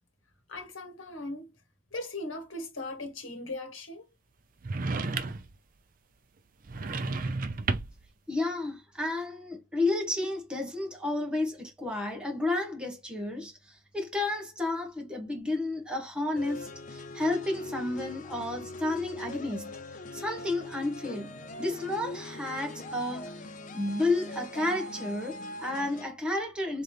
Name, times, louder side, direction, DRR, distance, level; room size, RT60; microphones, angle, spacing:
voice 1, 0.5-1.5 1.9-4.1, left 2 dB, 70° left, 1.7 m, -38 dB
sound 1, 4.6-5.6 6.6-8.1, right 3 dB, 40° right, 0.5 m, -32 dB
voice 2, 8.3-19.7 20.1-23.4 23.7-26.8, left 2 dB, 5° right, 1.4 m, -32 dB
sound 2, 16.3-26.1, left 1 dB, 40° left, 0.6 m, -41 dB
4.0 x 3.8 x 3.3 m
head